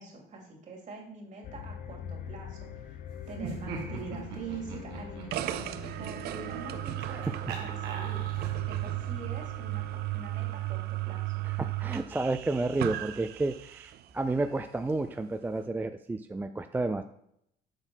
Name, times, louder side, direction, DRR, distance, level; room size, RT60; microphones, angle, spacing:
voice 1, 0.0-8.2 8.6-11.5, right 3 dB, 45° right, 0 dB, 2.8 m, -45 dB
sound 1, 1.4-11.7, left 9 dB, 55° left, 0.6 m, -45 dB
Laughter, 3.3-8.7, right 5 dB, 85° right, 1.6 m, -42 dB
sound 2, 5.3-14.0, right 16 dB, 70° right, 0.5 m, -35 dB
voice 2, 11.6-17.0, right 2 dB, 10° right, 8 dB, 0.3 m, -31 dB
7.9 x 4.3 x 5.7 m, 0.76 s
cardioid pair, 110°, 17 cm